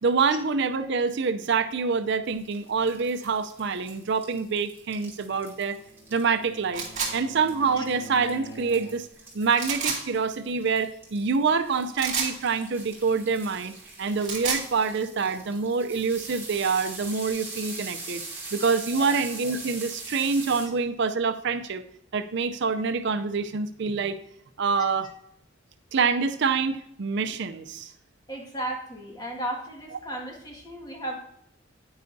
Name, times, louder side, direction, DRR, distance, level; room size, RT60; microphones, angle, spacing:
voice 1, 0.0-5.8 6.1-6.8 7.1-9.1 9.3-13.7 14.0-18.2 18.5-21.8 22.1-24.2 24.6-25.1 25.9-27.9, right 5 dB, 60° right, 10 dB, 0.5 m, -26 dB
sound 1, 2.3-20.7, right 3 dB, 10° right, 2.9 m, -42 dB
Bowed string instrument, 5.5-9.3, right 2 dB, 55° left, 1.4 m, -46 dB
sound 2, 6.7-7.1 9.6-10.0 12.0-12.3 14.0-14.7, right 5 dB, 35° right, 2.2 m, -28 dB
voice 2, 28.3-31.2, right 1 dB, 20° left, 0 dB, 1.8 m, -35 dB
9.6 x 9.2 x 2.7 m, 0.77 s
head